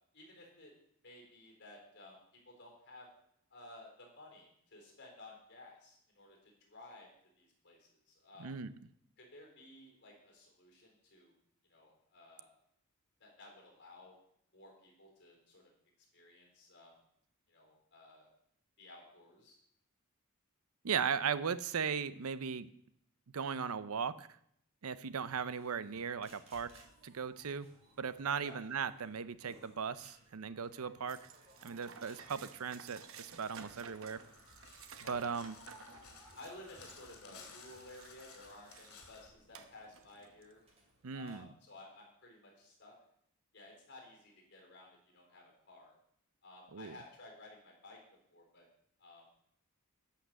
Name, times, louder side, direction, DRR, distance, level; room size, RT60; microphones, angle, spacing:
voice 1, 0.1-0.7 1.0-2.2 2.5-3.1 3.5-7.1 7.4-8.5 9.2-11.3 11.7-12.5 13.2-14.1 14.5-15.6 16.1-16.9 17.5-18.3 18.8-19.6 28.4-28.6 35.0-35.4 36.4-40.6 41.1-42.9 43.5-45.9 46.4-48.0 48.3-48.7 49.0-49.2, left 2 dB, 50° left, -1 dB, 3.8 m, -55 dB
voice 2, 8.4-8.7 20.8-22.7 23.3-24.3 24.8-27.7 28.0-31.2 31.6-34.2 35.1-35.6 41.0-41.5 46.7-47.0, right 6 dB, 80° right, 15 dB, 0.6 m, -37 dB
sound 1, 25.2-41.4, right 1 dB, 30° right, 2.5 m, -64 dB
sound 2, 31.1-39.0 39.5-40.5, right 6 dB, 65° right, 0.9 m, -55 dB
Crow, 33.4-39.3, left 5 dB, 75° left, 2.5 m, -57 dB
11.5 x 5.8 x 7.4 m, 0.71 s
head